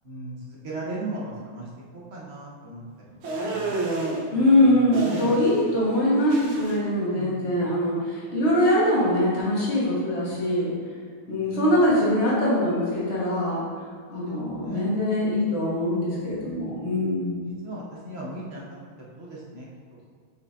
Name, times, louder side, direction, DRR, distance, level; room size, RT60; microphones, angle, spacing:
voice 1, 0.0-1.7 1.9-2.8 3.5-4.0 4.3-4.8 5.2-5.4 7.1-7.7 11.2-11.3 14.1-14.9 17.0-17.2 17.6-18.6 19.1-19.7, right 2 dB, 40° right, -5 dB, 1.1 m, -37 dB
sound 1, 3.2-4.2 4.9-5.7 5.9-6.7, right 2 dB, 75° right, 1.8 m, -29 dB
voice 2, 4.3-10.7 11.3-13.6 14.1-17.6, left 1 dB, 35° left, -7 dB, 1.8 m, -23 dB
6.0 x 5.8 x 2.8 m, 2.1 s
omnidirectional pair, 2.3 m